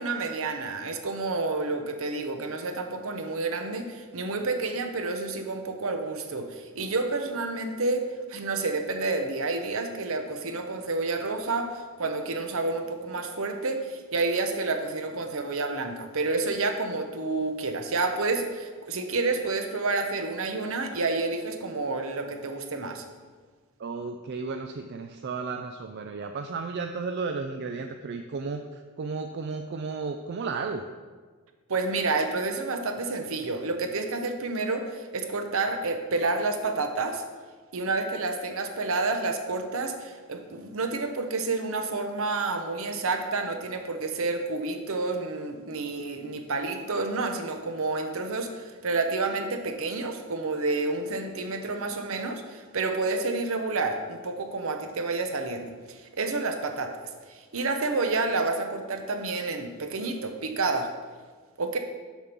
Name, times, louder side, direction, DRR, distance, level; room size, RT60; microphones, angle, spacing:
voice 1, 0.0-23.0 31.7-37.2 37.7-56.9 57.3-60.9 61.6-61.8, right 3 dB, 65° right, 5 dB, 0.9 m, -29 dB
voice 2, 23.8-30.8, right 4 dB, 50° right, 6 dB, 0.4 m, -33 dB
7.2 x 5.2 x 6.0 m, 1.5 s
head